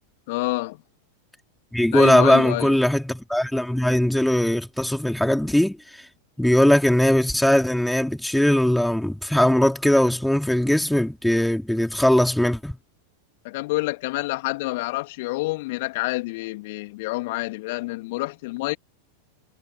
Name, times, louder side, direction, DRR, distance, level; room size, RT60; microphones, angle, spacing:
voice 1, 0.3-0.8 1.9-2.8 13.4-18.8, left 22 dB, 50° left, 2.9 m, -27 dB
voice 2, 1.7-5.8 6.4-12.8, left 1 dB, ahead, 4.3 m, -20 dB
figure-of-eight pair, 90°, 0 cm